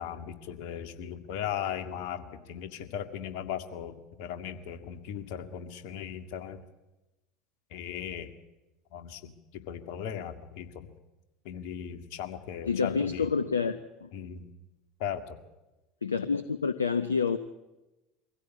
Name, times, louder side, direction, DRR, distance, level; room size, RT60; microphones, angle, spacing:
voice 1, 0.0-6.6 7.7-8.3 8.9-10.9 11.4-13.3 14.1-14.5 15.0-15.4, left 9 dB, 60° left, 2.0 m, -38 dB
voice 2, 12.7-14.1 16.0-17.4, left 5 dB, 85° left, 0.8 m, -28 dB
23.5 x 16.0 x 8.3 m
figure-of-eight pair, 75°, 0 cm